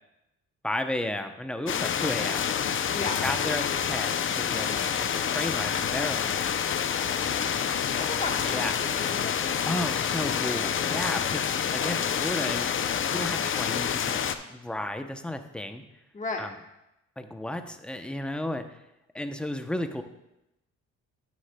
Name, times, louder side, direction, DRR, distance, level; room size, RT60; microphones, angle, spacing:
voice 1, 0.6-2.7 3.2-6.4 7.1-7.5 8.4-8.8 9.6-12.7 13.1-14.2 14.5-15.8 16.4-16.5 17.2-18.6 19.1-20.0, left 1 dB, 5° left, 7 dB, 0.6 m, -33 dB
sound 1, 1.7-14.4, left 8 dB, 45° left, 0.5 m, -28 dB
voice 2, 7.2-8.6 8.9-9.5 10.9-11.2 16.1-16.4, left 3 dB, 25° left, 2 dB, 1.3 m, -36 dB
9.6 x 9.4 x 2.2 m, 0.89 s
cardioid pair, 90°, 30 cm